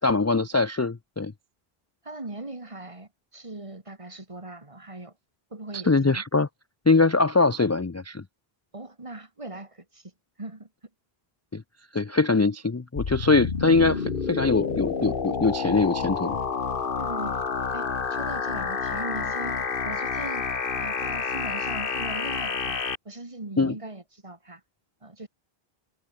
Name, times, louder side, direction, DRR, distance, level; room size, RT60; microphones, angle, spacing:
voice 1, 0.0-1.3 5.9-6.5 6.9-8.2 11.5-11.6 11.9-16.4 23.6-23.7, left 3 dB, 25° left, 0.3 m, -22 dB
voice 2, 2.0-5.1 5.5-6.2 8.7-10.1 10.4-10.7 17.0-17.4 17.7-22.8 23.0-24.6 25.0-25.3, right 2 dB, 30° right, 2.2 m, -40 dB
sound 1, 13.0-23.0, left 5 dB, 60° left, 1.5 m, -29 dB
omnidirectional pair, 1.0 m